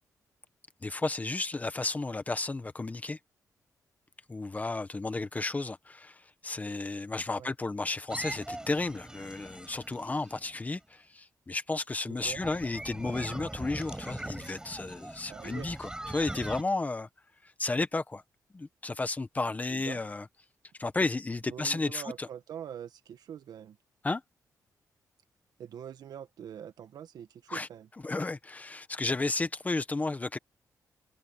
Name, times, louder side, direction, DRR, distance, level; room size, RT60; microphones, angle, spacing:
voice 1, 0.8-3.2 4.3-17.1 17.4-18.2 18.5-20.3 20.8-22.3 24.0-24.2 27.5-27.7 28.0-30.4, left 3 dB, 25° left, 1.5 m, -33 dB
sound 1, 8.1-10.7 12.2-16.6, right 1 dB, 10° right, 7.0 m, -41 dB
voice 2, 12.1-12.4 15.3-15.7 19.7-20.0 21.5-23.8 25.6-27.9, right 9 dB, 85° right, 1.7 m, -44 dB
cardioid pair, 110°, 7 cm